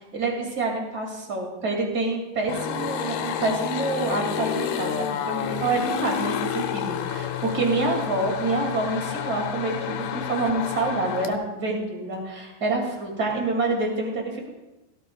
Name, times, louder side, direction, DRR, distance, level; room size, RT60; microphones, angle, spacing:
voice 1, 0.1-14.5, right 3 dB, 30° right, 0 dB, 2.4 m, -27 dB
sound 1, 2.5-11.3, left 9 dB, 75° left, 2.5 m, -30 dB
17.0 x 14.0 x 2.4 m, 1.0 s
omnidirectional pair, 4.7 m